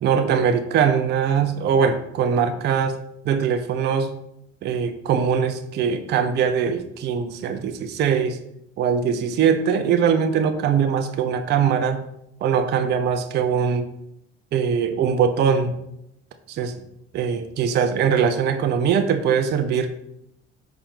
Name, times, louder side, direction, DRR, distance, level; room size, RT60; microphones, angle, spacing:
voice 1, 0.0-3.0 3.3-4.1 4.6-8.4 8.8-12.0 12.4-13.9 14.5-15.8 16.5-16.7 17.1-19.9, right 7 dB, 30° right, 9 dB, 0.4 m, -21 dB
4.2 x 2.5 x 3.2 m, 0.80 s
figure-of-eight pair, 50°, 35 cm